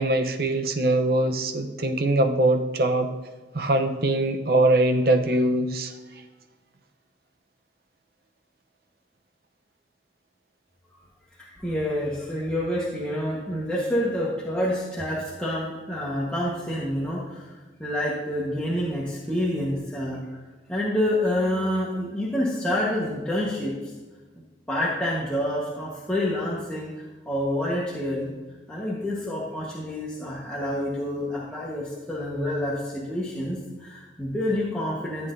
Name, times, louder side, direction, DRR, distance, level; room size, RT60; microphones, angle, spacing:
voice 1, 0.0-3.1 3.5-5.9, right 2 dB, 60° right, 5 dB, 0.8 m, -22 dB
voice 2, 11.6-17.4 17.8-20.2 20.7-23.7 24.7-26.9 27.2-28.3 28.7-35.3, left 1 dB, 5° left, -7 dB, 1.3 m, -27 dB
14.0 x 8.0 x 2.7 m, 1.2 s
head